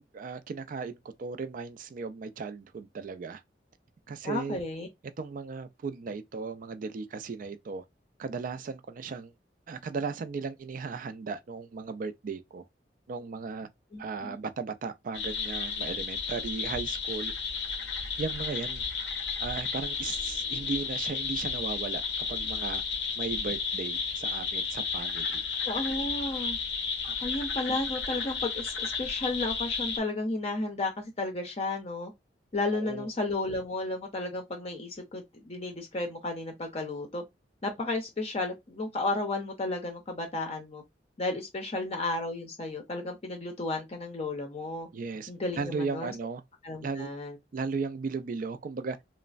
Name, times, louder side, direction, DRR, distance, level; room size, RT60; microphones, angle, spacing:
voice 1, 0.0-3.4 4.1-4.6 5.2-7.8 8.2-9.3 9.7-12.6 13.1-13.7 14.0-17.3 18.2-18.8 19.4-22.8 23.2-25.4 32.7-33.1 44.9-45.3 45.6-46.4 46.8-47.1 47.5-49.0, right 4 dB, 50° right, 0.3 m, -36 dB
voice 2, 4.2-4.9 13.9-14.4 25.6-26.6 27.2-32.1 32.5-37.2 37.6-40.8 41.2-44.9 45.3-46.1 46.6-47.4, left 2 dB, 35° left, 0.5 m, -33 dB
sound 1, 15.1-30.0, left 5 dB, 80° left, 0.6 m, -33 dB
3.1 x 2.0 x 2.4 m
head